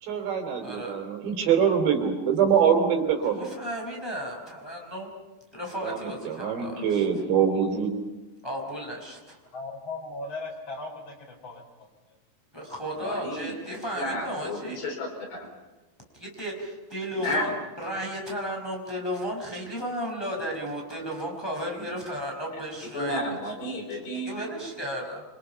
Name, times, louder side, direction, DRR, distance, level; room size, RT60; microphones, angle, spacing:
voice 1, 0.0-3.5 5.8-7.9, right 7 dB, 85° right, 4 dB, 5.4 m, -24 dB
voice 2, 0.6-1.0 3.2-5.1 5.5-7.0 8.4-9.4 12.5-14.8 16.1-17.5 17.8-23.4 23.9-25.2, equal, 5° left, 0 dB, 4.5 m, -34 dB
voice 3, 9.5-11.9, left 3 dB, 30° left, 1 dB, 5.2 m, -38 dB
voice 4, 13.0-15.4 17.2-17.5 21.8-21.9 22.9-24.4, left 1 dB, 65° left, 1 dB, 6.2 m, -32 dB
27.5 x 25.0 x 5.8 m, 1.2 s
omnidirectional pair, 4.9 m